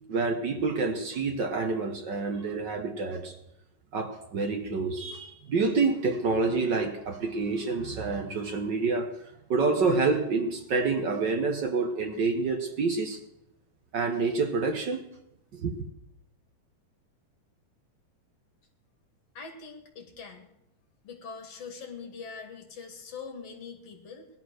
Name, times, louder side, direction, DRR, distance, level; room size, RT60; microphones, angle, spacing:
voice 1, 0.0-3.4 3.9-9.2 9.5-13.2 13.9-15.0 15.5-15.7, right 4 dB, 60° right, 1.1 m, -28 dB
voice 2, 19.3-20.5 21.0-24.3, left 5 dB, 50° left, 3.2 m, -43 dB
18.0 x 12.0 x 6.5 m
omnidirectional pair, 3.8 m